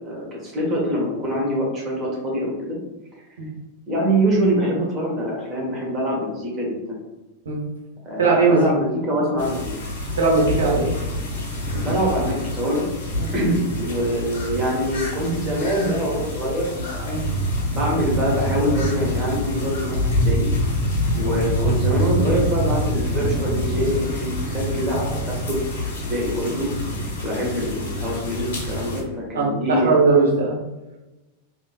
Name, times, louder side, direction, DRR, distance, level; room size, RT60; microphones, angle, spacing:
voice 1, 0.0-2.8 3.9-7.0 8.0-9.7 11.7-12.8 13.3-17.1 17.7-20.5 21.1-25.6 26.0-26.7 27.2-30.0, equal, 30° right, -2 dB, 1.3 m, -24 dB
voice 2, 8.2-8.7 10.2-10.9 17.1-17.2 29.3-30.5, right 4 dB, 65° right, -2 dB, 1.0 m, -18 dB
sound 1, 9.4-29.0, equal, 55° left, 0.8 m, -26 dB
3.4 x 2.9 x 2.4 m, 1.0 s
figure-of-eight pair, 90°, 0 cm